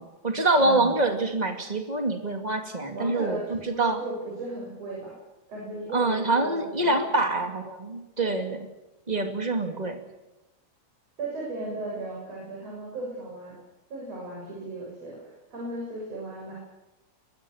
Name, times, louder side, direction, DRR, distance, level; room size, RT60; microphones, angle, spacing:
voice 1, 0.0-4.0 5.9-8.6 9.1-10.0, right 2 dB, 15° right, 5 dB, 1.8 m, -25 dB
voice 2, 0.6-1.0 2.9-5.1 5.5-7.2 8.2-8.4 11.2-13.5 13.9-16.5, right 2 dB, 55° right, -4 dB, 8.1 m, -36 dB
23.5 x 20.0 x 7.2 m, 1.0 s
omnidirectional pair, 3.5 m